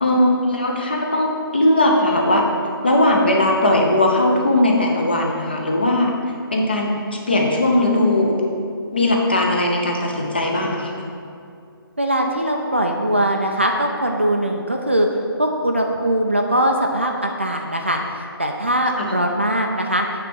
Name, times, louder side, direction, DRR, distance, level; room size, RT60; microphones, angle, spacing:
voice 1, 0.0-2.5 2.8-6.2 6.5-8.4 8.9-11.0 19.0-19.1, left 1 dB, 25° left, 0 dB, 0.6 m, -19 dB
voice 2, 12.0-15.1 15.4-20.1, right 1 dB, 30° right, 2 dB, 0.3 m, -21 dB
8.6 x 3.4 x 6.1 m, 2.4 s
hypercardioid pair, 180°, 13 cm